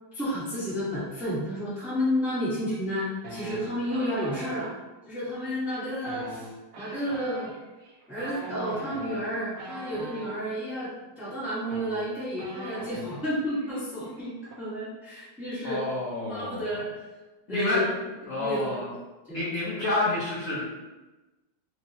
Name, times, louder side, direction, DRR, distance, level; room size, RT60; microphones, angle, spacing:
voice 1, 0.1-4.7 5.1-6.5 6.8-7.5 8.1-10.9 11.2-15.8 16.3-16.9 17.5-17.9 18.2-18.9 19.3-19.4, equal, ahead, -10 dB, 0.6 m, -31 dB
sound 1, 3.2-4.7 5.9-10.3 11.3-11.4 11.6-13.2 13.5-13.8 14.0-14.5, right 2 dB, 70° right, 0.9 m, -40 dB
voice 2, 15.6-16.6 17.5-17.8 18.3-18.9 19.3-20.6, left 2 dB, 65° left, -8 dB, 0.8 m, -28 dB
4.5 x 2.0 x 2.7 m, 1.1 s
omnidirectional pair, 2.2 m